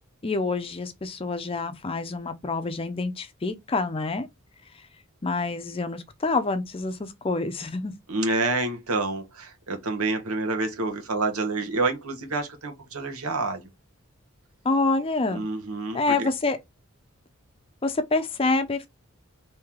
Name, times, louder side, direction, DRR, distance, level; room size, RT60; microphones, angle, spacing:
voice 1, 0.2-4.3 5.2-7.9 14.6-15.4 15.9-16.6 17.8-18.9, left 3 dB, 25° left, 0.4 m, -27 dB
voice 2, 8.1-13.7 15.3-16.3, right 3 dB, 85° right, 1.0 m, -28 dB
3.0 x 2.8 x 3.6 m
head